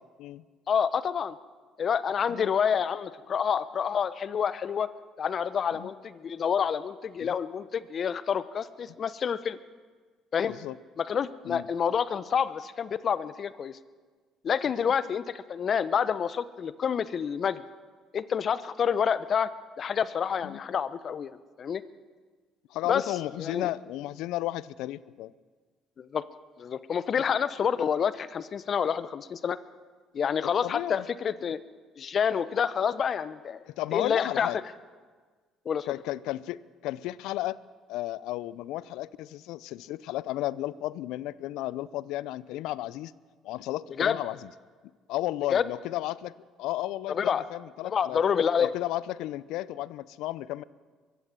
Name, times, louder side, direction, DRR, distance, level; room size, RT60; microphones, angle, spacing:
voice 1, 0.7-1.3 1.8-4.9 5.2-9.6 10.3-10.5 11.0-13.8 14.4-17.6 18.1-19.5 19.8-21.8 22.9-23.0 23.4-23.7 26.0-26.2 26.6-29.6 30.1-31.6 32.0-33.6 33.9-34.6 35.6-35.9 44.0-44.2 45.5-45.7 47.1-47.4 47.8-48.7, left 7 dB, 50° left, 16 dB, 1.0 m, -28 dB
voice 2, 22.7-25.3 30.4-31.0 33.7-34.6 35.9-37.6 37.9-43.1 43.4-44.5 45.1-46.3 46.6-48.2 48.6-50.6, left 15 dB, 70° left, 20 dB, 0.6 m, -34 dB
23.5 x 15.5 x 7.6 m, 1.5 s
hypercardioid pair, 60°, 0 cm